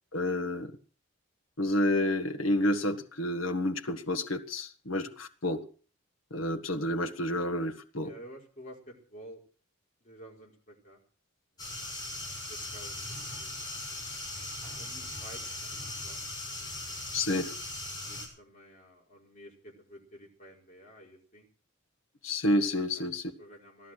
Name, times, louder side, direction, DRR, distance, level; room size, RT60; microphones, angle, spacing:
voice 1, 0.1-0.7 1.6-5.7 6.3-8.1 17.1-17.5 22.2-23.2, left 1 dB, 75° left, 1.7 m, -29 dB
voice 2, 8.0-9.4 10.0-11.0 11.6-11.8 12.3-13.7 14.8-16.2 18.1-21.5 22.9-23.0 23.4-23.9, equal, 40° left, 4.8 m, -51 dB
sound 1, 11.6-18.3, left 2 dB, 20° left, 6.8 m, -39 dB
17.0 x 12.0 x 6.4 m
head